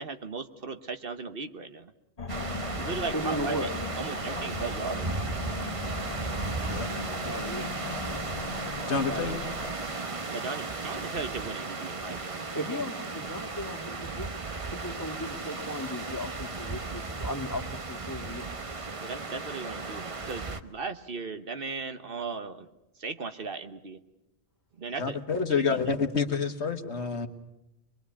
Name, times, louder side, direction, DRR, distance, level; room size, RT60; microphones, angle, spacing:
voice 1, 0.0-1.9 2.8-3.7 4.0-5.1 9.1-9.4 10.3-12.4 19.0-22.7 23.0-24.0 24.8-25.2 25.5-25.9, right 4 dB, 55° right, 9 dB, 1.3 m, -37 dB
sound 1, 2.2-9.7, left 4 dB, 35° left, 1.3 m, -38 dB
sound 2, 2.3-20.6, right 3 dB, 30° right, 1.0 m, -35 dB
voice 2, 3.1-3.7 7.2-7.8 12.5-14.4 14.7-18.5, equal, 20° left, 5 dB, 1.7 m, -36 dB
voice 3, 8.9-9.4 25.0-27.3, left 5 dB, 80° left, 7 dB, 1.8 m, -28 dB
24.0 x 22.5 x 8.4 m, 0.88 s
omnidirectional pair, 1.1 m